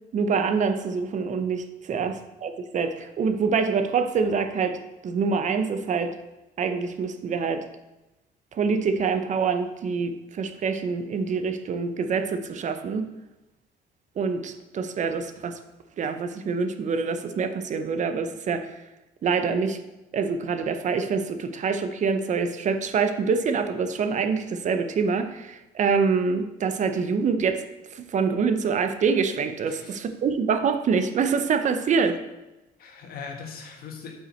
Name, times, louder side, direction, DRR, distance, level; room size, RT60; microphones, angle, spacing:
voice 1, 0.1-6.2 6.6-7.6 8.5-13.1 14.2-15.6 16.0-18.7 19.2-19.8 20.1-27.6 27.9-32.2, right 5 dB, 45° right, 8 dB, 0.7 m, -25 dB
voice 2, 29.6-30.0 32.8-34.1, left 5 dB, 60° left, 2 dB, 1.7 m, -40 dB
8.4 x 5.7 x 4.3 m, 1.0 s
cardioid pair, 110°, 17 cm